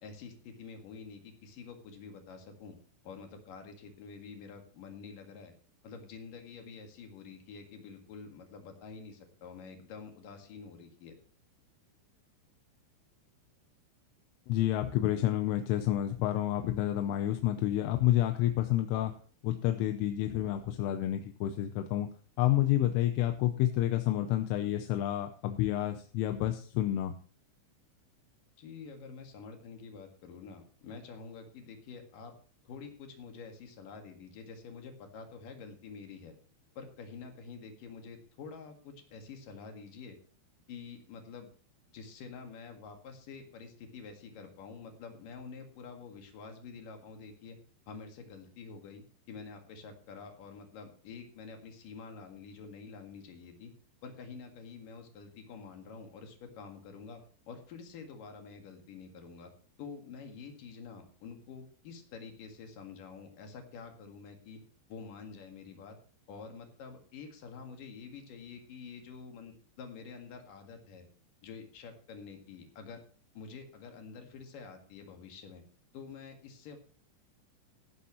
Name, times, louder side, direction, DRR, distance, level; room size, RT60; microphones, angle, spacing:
voice 1, 0.0-2.8 3.0-5.5 5.8-11.2 28.6-32.3 32.6-36.3 36.8-40.2 40.7-41.5 41.9-47.6 47.9-53.7 54.0-59.5 59.8-64.6 64.9-66.0 66.3-71.1 71.4-73.0 73.3-75.6 75.9-76.8, left 5 dB, 55° left, 4 dB, 2.9 m, -48 dB
voice 2, 14.5-19.1 19.4-22.1 22.4-27.1, left 13 dB, 90° left, 7 dB, 3.3 m, -29 dB
14.5 x 11.5 x 3.1 m, 0.42 s
omnidirectional pair, 5.5 m